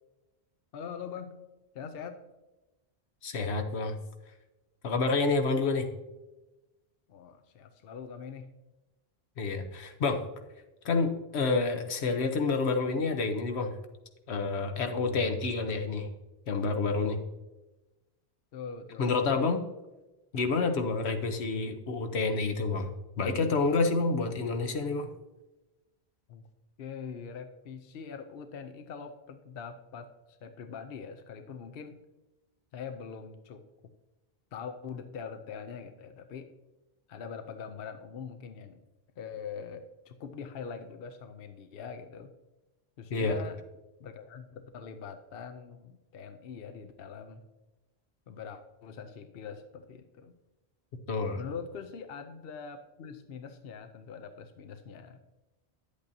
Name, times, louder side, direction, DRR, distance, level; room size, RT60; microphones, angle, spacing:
voice 1, 0.7-1.4 1.7-2.2 7.1-8.5 18.5-19.1 26.3-26.4 26.8-32.0 32.7-33.6 34.5-36.5 37.1-38.8 39.2-42.3 43.0-43.6 44.0-47.4 48.3-50.4 51.4-55.2, left 6 dB, 65° left, 7 dB, 0.8 m, -43 dB
voice 2, 3.2-3.9 4.8-5.9 9.4-10.2 10.8-13.7 14.3-16.1 16.5-17.2 19.0-19.6 20.3-22.9 23.2-25.1 43.1-43.4 51.1-51.4, left 3 dB, 85° left, 6 dB, 1.1 m, -28 dB
10.0 x 8.3 x 2.7 m, 1.1 s
omnidirectional pair, 1.1 m